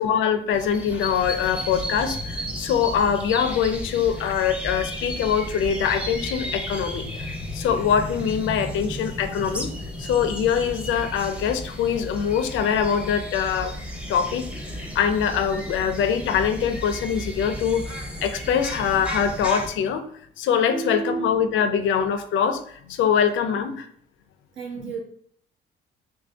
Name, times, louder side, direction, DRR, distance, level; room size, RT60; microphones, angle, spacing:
voice 1, 0.0-9.7 10.0-13.8 14.1-17.9 18.2-20.0 20.4-23.9, left 7 dB, 80° left, 10 dB, 0.4 m, -23 dB
sound 1, 0.5-19.7, equal, 5° right, 0.7 m, -34 dB
voice 2, 20.7-21.5 23.5-23.7 24.6-25.0, right 5 dB, 75° right, 0 dB, 1.1 m, -32 dB
3.1 x 2.6 x 3.3 m, 0.63 s
cardioid pair, 90°, 20 cm